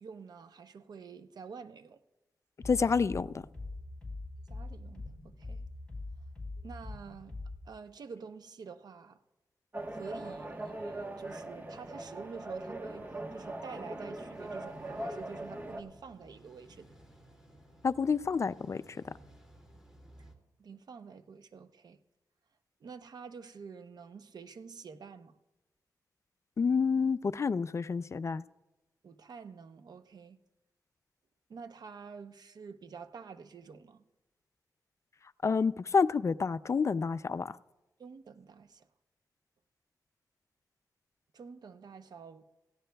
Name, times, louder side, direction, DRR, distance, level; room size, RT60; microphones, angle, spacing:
voice 1, 0.0-2.0 4.5-5.7 6.6-7.3 7.6-9.2 9.9-16.9 20.6-22.0 22.8-25.4 29.0-30.4 31.5-34.0 38.0-38.9 41.3-42.4, right 5 dB, 70° right, 0.7 m, -48 dB
voice 2, 2.6-3.3 17.8-18.8 26.6-28.4 35.4-37.5, left 5 dB, 45° left, 0.4 m, -28 dB
sound 1, 2.6-7.6, left 2 dB, 10° left, 4.3 m, -43 dB
sound 2, 9.7-15.8, right 1 dB, 25° right, 1.1 m, -40 dB
sound 3, 14.3-20.3, right 1 dB, 5° right, 2.5 m, -57 dB
18.0 x 16.0 x 2.3 m
cardioid pair, 80°, 7 cm